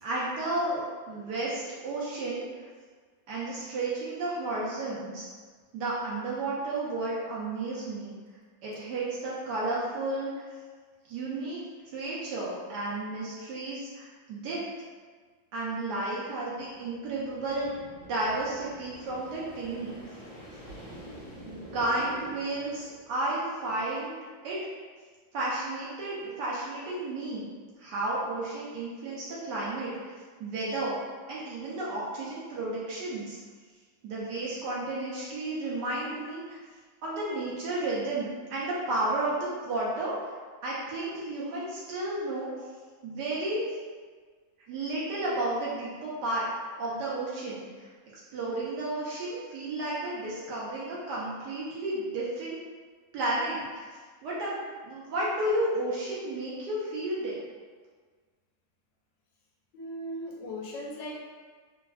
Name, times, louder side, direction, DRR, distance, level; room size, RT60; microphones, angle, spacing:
voice 1, 0.0-2.4 3.3-5.2 5.7-8.1 8.6-10.5 11.1-11.6 11.9-14.6 15.5-19.9 21.4-24.2 24.4-24.6 25.3-27.5 27.8-30.9 31.3-33.4 34.0-36.6 37.0-40.3 40.6-42.5 43.0-43.6 44.7-46.5 46.8-47.9 48.3-52.6 53.1-53.9 54.2-57.3, right 2 dB, 75° right, -6 dB, 1.0 m, -32 dB
sound 1, 16.6-23.2, equal, 50° left, 1.2 m, -47 dB
voice 2, 59.7-61.2, equal, 75° left, -4 dB, 1.2 m, -38 dB
3.3 x 2.2 x 2.2 m, 1.5 s
omnidirectional pair, 2.1 m